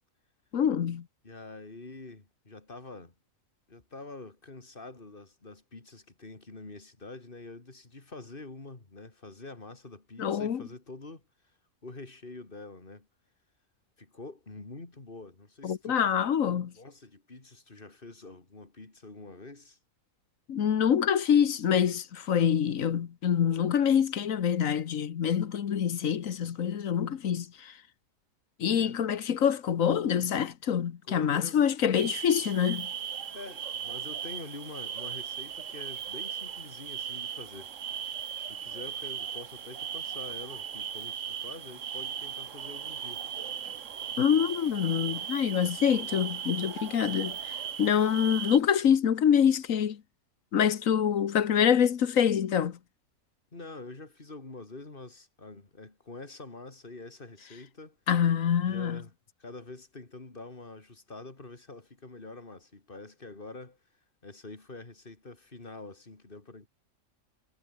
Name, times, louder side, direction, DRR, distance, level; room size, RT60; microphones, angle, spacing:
voice 1, 0.5-1.0 10.2-10.6 15.6-16.7 20.5-27.7 28.6-32.9 44.2-50.0 50.5-52.8 58.1-59.0, left 8 dB, 75° left, 1.5 m, -26 dB
voice 2, 1.2-3.2 3.7-11.3 11.8-13.1 14.0-16.0 16.6-19.8 28.7-29.0 31.1-31.6 33.3-37.7 38.5-43.2 53.5-58.0 58.6-59.1 59.4-63.8 64.2-66.7, left 3 dB, 40° left, 3.1 m, -46 dB
sound 1, 31.9-48.6, right 8 dB, 70° right, 1.4 m, -38 dB
omnidirectional pair, 1.4 m